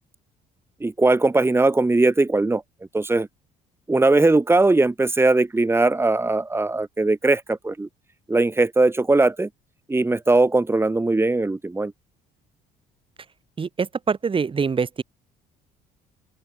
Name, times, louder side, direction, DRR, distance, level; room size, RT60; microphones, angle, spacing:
voice 1, 0.8-2.6 2.9-3.3 3.9-7.9 8.3-9.5 9.9-11.9, right 2 dB, 15° right, 5.6 m, -19 dB
voice 2, 13.6-15.0, right 5 dB, 30° right, 6.8 m, -24 dB
open air
cardioid pair, 110°, 17 cm